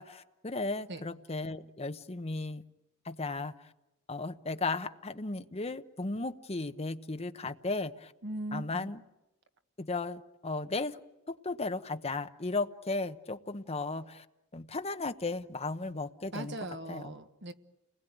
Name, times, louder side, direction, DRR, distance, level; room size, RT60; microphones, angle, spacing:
voice 1, 0.0-2.6 3.0-3.5 4.1-8.1 8.5-9.0 9.8-11.0 11.3-14.2 14.5-16.6 16.9-17.1, left 3 dB, 30° left, 1.0 m, -35 dB
voice 2, 8.2-8.9 16.3-17.5, right 1 dB, 60° right, 1.4 m, -39 dB
30.0 x 20.5 x 9.3 m
head